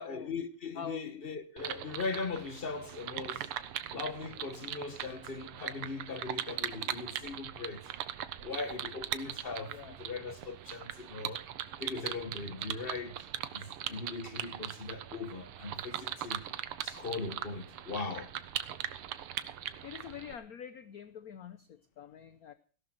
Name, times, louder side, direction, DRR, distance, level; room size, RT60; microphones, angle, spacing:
voice 1, 0.0-3.5 3.9-7.8 8.4-11.4 11.8-13.2 13.5-16.4 16.8-18.3, left 4 dB, 30° left, 1.3 m, -39 dB
sound 1, 1.6-20.3, right 11 dB, 90° right, 1.9 m, -40 dB
voice 2, 9.7-10.0 19.8-22.5, left 8 dB, 60° left, 1.0 m, -45 dB
17.0 x 12.0 x 4.5 m
omnidirectional pair, 2.4 m